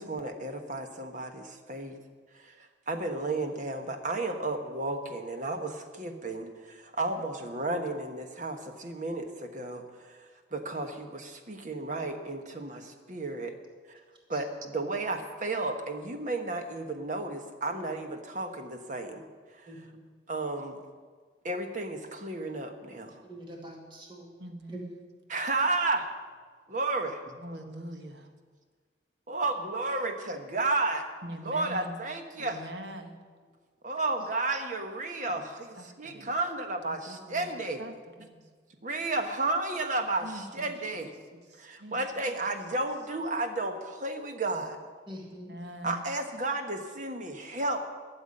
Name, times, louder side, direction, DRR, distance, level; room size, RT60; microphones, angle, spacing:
voice 1, 0.0-2.0 2.3-10.2 10.5-13.6 13.9-14.0 14.3-19.2 19.6-19.8 20.3-20.8 21.4-23.2 25.3-26.1 26.7-27.2 29.3-31.1 31.4-32.7 33.8-37.8 38.8-41.1 41.6-44.8 45.8-47.8, right 2 dB, 45° right, 6 dB, 1.3 m, -33 dB
voice 2, 19.7-20.0 23.3-24.3 24.7-24.8 45.1-45.5, equal, 30° right, -1 dB, 2.2 m, -44 dB
voice 3, 24.4-24.9 27.4-28.3 31.2-32.0 32.3-33.2 35.3-35.5 35.8-36.4 36.8-38.4 40.2-42.0 45.3-46.0, right 1 dB, 75° right, 6 dB, 1.5 m, -44 dB
12.5 x 7.2 x 9.8 m, 1.5 s
head